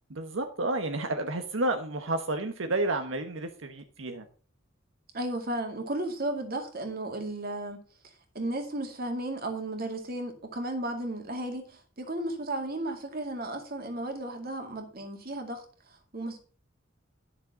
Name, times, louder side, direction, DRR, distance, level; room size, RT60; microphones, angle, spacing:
voice 1, 0.1-4.2, right 2 dB, 90° right, 7 dB, 1.1 m, -31 dB
voice 2, 5.1-7.8 8.3-15.6 16.1-16.4, right 1 dB, 50° right, 5 dB, 2.2 m, -34 dB
10.5 x 6.7 x 5.7 m, 0.39 s
head